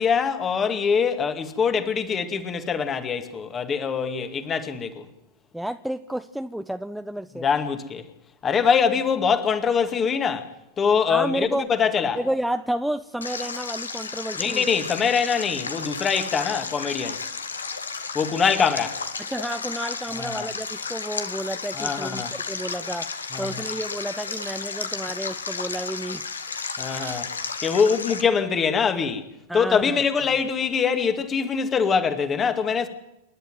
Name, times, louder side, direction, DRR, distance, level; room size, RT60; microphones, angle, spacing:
voice 1, 0.0-5.0 7.3-8.0 8.4-10.5 10.8-12.2 14.4-17.2 18.1-19.0 20.2-20.5 21.7-22.3 23.3-23.6 26.8-27.3 27.6-29.2 29.5-32.9, left 6 dB, 25° left, 2.2 m, -23 dB
voice 2, 5.5-7.4 11.1-11.7 12.2-14.6 18.3-18.4 19.3-26.2 29.5-30.0, right 1 dB, ahead, 0.7 m, -31 dB
Stream, 13.2-28.2, left 5 dB, 75° left, 1.7 m, -33 dB
Camera, 22.6-23.1 24.3-24.8 26.9-27.8 28.2-28.3, right 6 dB, 70° right, 4.2 m, -45 dB
28.0 x 11.5 x 9.3 m
figure-of-eight pair, 90°, 0 cm